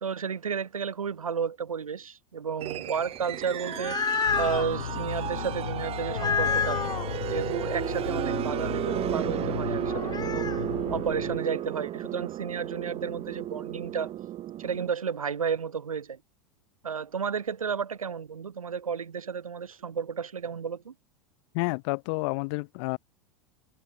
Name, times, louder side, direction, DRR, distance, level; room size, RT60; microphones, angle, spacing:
voice 1, 0.0-4.0 4.4-6.8 7.2-14.1 14.6-16.2 16.8-20.9, right 6 dB, 90° right, 2.2 m, -32 dB
sound 1, 2.6-14.9, right 13 dB, 35° right, 0.8 m, -33 dB
sound 2, 3.5-4.7 6.1-7.1 9.9-10.6, left 6 dB, 25° left, 3.5 m, -29 dB
sound 3, 4.3-11.4, left 9 dB, 80° left, 2.6 m, -35 dB
voice 2, 21.5-23.0, left 30 dB, 60° left, 5.7 m, -29 dB
hypercardioid pair, 90°, 17 cm